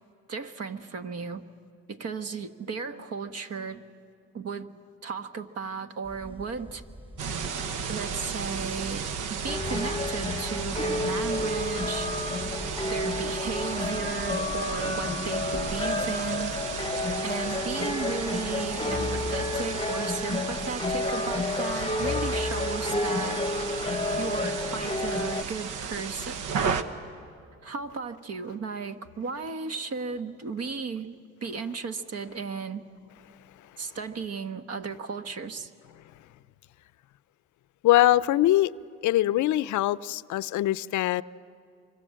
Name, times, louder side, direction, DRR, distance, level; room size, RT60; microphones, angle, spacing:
voice 1, 0.3-1.4 1.9-3.8 4.3-4.7 5.0-6.8 7.9-12.2 12.8-16.5 17.2-23.7 24.2-26.4 27.6-31.1 31.4-32.8 33.8-35.7, right 5 dB, 55° right, 9 dB, 1.3 m, -35 dB
sound 1, 6.0-15.8, right 1 dB, 15° right, 5.0 m, -46 dB
sound 2, 7.2-26.8, right 6 dB, 85° right, 1.2 m, -34 dB
sound 3, 9.5-25.4, left 2 dB, 20° left, 0.9 m, -30 dB
voice 2, 37.8-38.7 39.0-41.2, left 14 dB, 75° left, 18 dB, 0.5 m, -22 dB
26.0 x 24.5 x 7.6 m, 2.3 s
cardioid pair, 90°, 30 cm